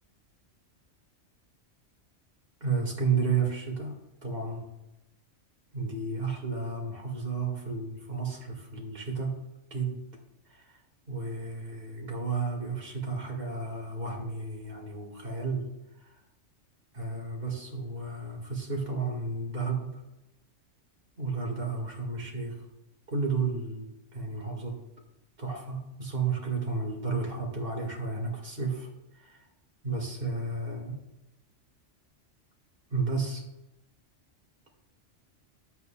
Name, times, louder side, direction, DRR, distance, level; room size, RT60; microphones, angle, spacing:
voice 1, 2.6-4.7 5.7-9.4 9.7-10.0 10.5-10.8 11.1-15.7 16.9-20.0 21.2-22.6 23.1-24.8 25.4-28.9 29.1-29.4 29.8-31.0 32.9-33.4, right 4 dB, 50° right, 0 dB, 2.1 m, -32 dB
11.0 x 8.1 x 2.3 m, 0.91 s
omnidirectional pair, 1.3 m